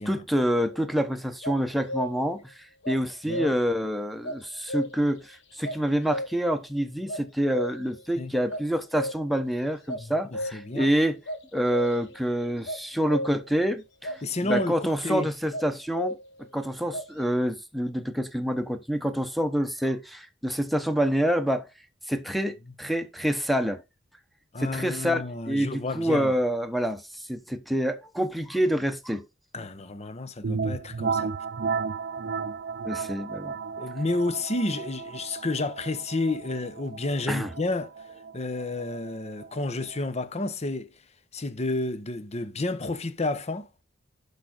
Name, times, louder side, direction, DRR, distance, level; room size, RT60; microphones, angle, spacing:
voice 1, 0.1-2.5 2.9-11.2 11.5-16.2 16.5-21.7 22.1-23.8 24.6-29.2 32.9-33.6 37.3-37.5, equal, ahead, 1.0 m, -27 dB
sound 1, 0.7-1.0 1.4-2.4 2.8-3.8 4.2-5.2 5.6-6.6 7.1-8.0 8.5-9.4 9.9-10.8 11.3-12.2 12.7-13.6 14.0-14.9 15.5-16.5 16.9-17.1, equal, 70° left, 1.3 m, -34 dB
voice 2, 10.5-10.9 14.2-15.3 24.5-26.3 29.5-31.3 33.8-37.9 38.3-40.9 41.3-43.7, left 2 dB, 35° left, 0.9 m, -30 dB
sound 2, 30.4-40.0, right 5 dB, 55° right, 0.5 m, -34 dB
11.0 x 5.0 x 4.0 m
head